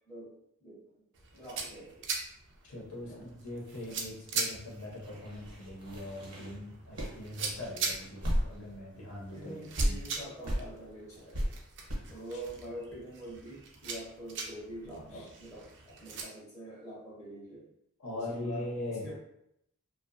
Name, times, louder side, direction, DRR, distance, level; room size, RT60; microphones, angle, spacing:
voice 1, 0.1-1.0 1.3-2.1 3.1-3.3 9.3-11.7 12.1-17.7 18.1-18.7 19.0-19.1, equal, 15° left, -9 dB, 0.7 m, -45 dB
sound 1, 1.1-16.2, right 4 dB, 55° right, 0.4 m, -42 dB
voice 2, 2.6-10.0 15.1-15.3 18.0-19.0, left 1 dB, 70° left, -3 dB, 0.8 m, -41 dB
sound 2, 5.0-8.8 9.1-9.2 9.8-9.9 10.4-10.6 11.3-11.5 11.9-12.0, equal, 80° right, 1.0 m, -34 dB
2.6 x 2.2 x 2.4 m, 0.77 s
head